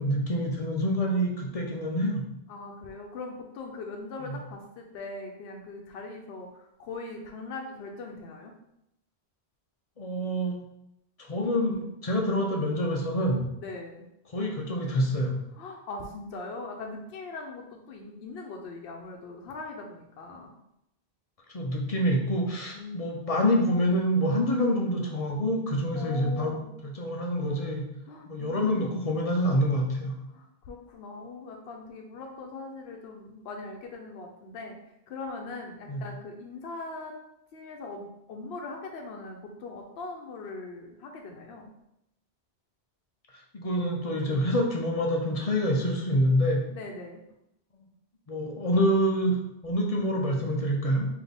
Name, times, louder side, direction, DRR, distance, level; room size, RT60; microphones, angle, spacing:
voice 1, 0.0-2.2 4.2-4.4 10.0-10.6 11.2-13.5 14.3-15.3 21.5-26.6 26.8-27.9 28.3-30.2 35.9-36.0 43.5-46.6 48.3-51.1, equal, 45° left, 0 dB, 0.5 m, -26 dB
voice 2, 2.5-8.5 13.6-14.0 15.6-20.5 22.7-23.1 25.9-26.8 28.1-28.9 30.3-34.8 35.1-37.2 37.5-41.7 46.7-47.2, left 3 dB, 75° left, 1 dB, 0.8 m, -40 dB
4.0 x 2.8 x 3.4 m, 0.81 s
omnidirectional pair, 1.1 m